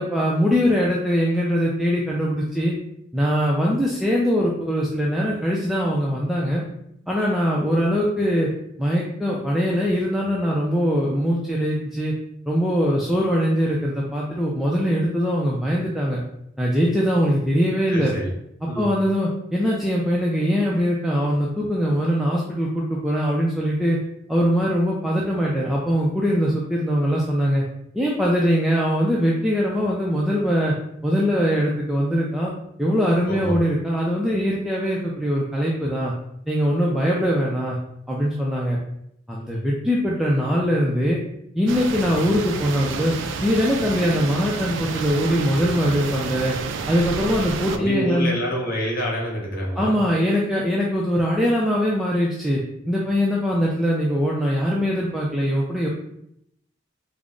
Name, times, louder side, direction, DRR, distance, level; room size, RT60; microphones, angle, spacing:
voice 1, 0.0-2.7 3.1-6.6 7.1-8.5 8.8-12.1 12.5-16.2 16.6-18.1 18.8-24.0 24.3-27.6 27.9-30.7 31.0-32.5 32.8-36.1 36.5-37.8 38.1-38.8 39.3-41.2 41.6-43.1 43.4-46.6 46.9-48.3 49.8-52.6 52.9-55.9, equal, ahead, -4 dB, 0.3 m, -22 dB
voice 2, 17.9-18.3 18.6-18.9 33.3-33.5 47.7-50.0, equal, 50° left, -3 dB, 1.0 m, -27 dB
sound 1, 41.7-47.8, right 5 dB, 75° right, 0.3 m, -30 dB
3.5 x 2.0 x 3.6 m, 0.75 s
head